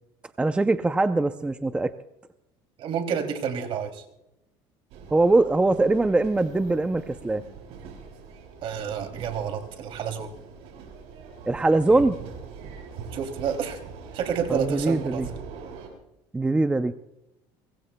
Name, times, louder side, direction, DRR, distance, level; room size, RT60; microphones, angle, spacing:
voice 1, 0.4-1.9 5.1-7.4 11.4-12.2 14.5-15.3 16.3-16.9, right 2 dB, 10° right, 10 dB, 0.5 m, -22 dB
voice 2, 2.8-4.0 8.6-10.3 13.1-13.8 14.1-15.2, right 7 dB, 55° right, 5 dB, 2.7 m, -29 dB
sound 1, 4.9-15.9, right 5 dB, 75° right, 5.7 m, -42 dB
24.5 x 21.5 x 2.2 m, 0.89 s
cardioid pair, 125°, 11 cm